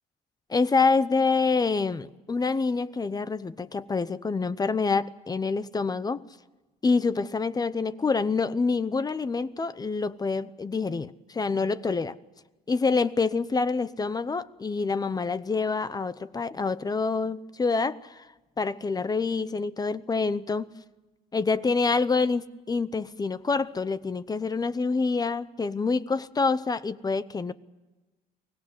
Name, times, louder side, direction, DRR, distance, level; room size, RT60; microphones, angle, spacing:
voice 1, 0.5-6.2 6.8-12.2 12.7-18.2 18.6-20.7 21.3-27.5, left 4 dB, 20° left, 0.8 m, -26 dB
24.0 x 18.5 x 7.8 m
cardioid pair, 110°, 17 cm